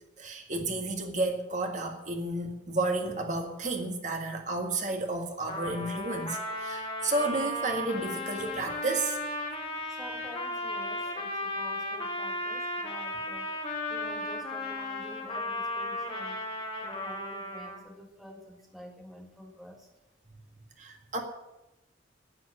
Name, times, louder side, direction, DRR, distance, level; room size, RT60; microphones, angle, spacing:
voice 1, 0.2-9.2 20.8-21.2, right 2 dB, 40° right, 3 dB, 1.8 m, -32 dB
Trumpet, 5.5-17.9, left 1 dB, 30° left, 2.4 m, -35 dB
voice 2, 9.8-13.5 13.9-16.4 16.8-19.9, equal, ahead, 0 dB, 1.7 m, -48 dB
10.0 x 9.3 x 9.8 m, 0.96 s
head